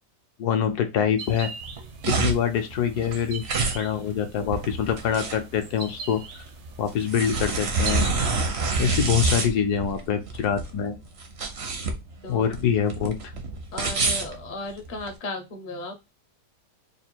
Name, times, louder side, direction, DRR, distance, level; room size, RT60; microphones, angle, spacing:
voice 1, 0.4-1.5 2.1-3.4 3.7-6.2 6.8-8.1 8.8-11.0 12.3-13.3, left 8 dB, 70° left, 7 dB, 1.1 m, -25 dB
sound 1, 1.2-8.1, right 5 dB, 80° right, 1.5 m, -41 dB
sound 2, 1.6-15.1, right 3 dB, 55° right, 0.7 m, -27 dB
voice 2, 13.7-15.9, left 2 dB, 45° left, 4 dB, 0.6 m, -35 dB
3.4 x 2.5 x 4.3 m, 0.24 s
omnidirectional pair, 1.8 m